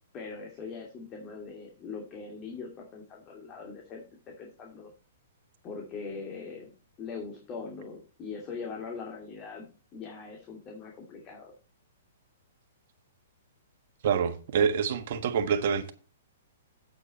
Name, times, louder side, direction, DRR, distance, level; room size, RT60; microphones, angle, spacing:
voice 1, 0.1-4.0 4.4-4.9 5.6-6.7 7.0-9.7 9.9-11.5, left 5 dB, 30° left, 2.7 m, -41 dB
voice 2, 14.0-15.9, right 7 dB, 55° right, 1.3 m, -26 dB
8.5 x 7.9 x 4.3 m
hypercardioid pair, 130°, 0 cm